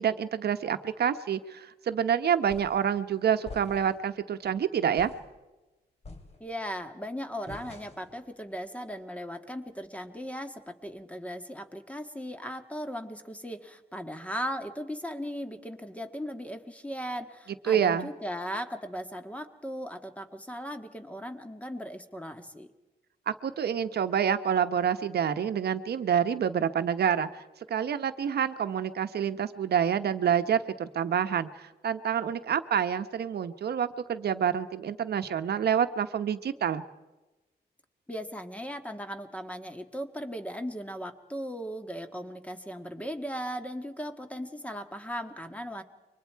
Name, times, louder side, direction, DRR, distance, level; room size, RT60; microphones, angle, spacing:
voice 1, 0.0-5.1 17.7-18.1 23.3-27.4 27.7-36.8, right 8 dB, 75° right, 10 dB, 1.1 m, -27 dB
sound 1, 2.5-2.9 3.4-4.1 4.4-4.6 5.0-5.3 6.0-6.7 7.5-8.2, left 3 dB, 40° left, 3.9 m, -46 dB
voice 2, 6.4-22.7 38.1-45.8, equal, 10° left, 7 dB, 1.8 m, -37 dB
28.5 x 24.5 x 4.7 m, 1.1 s
wide cardioid pair, 130°, 17 cm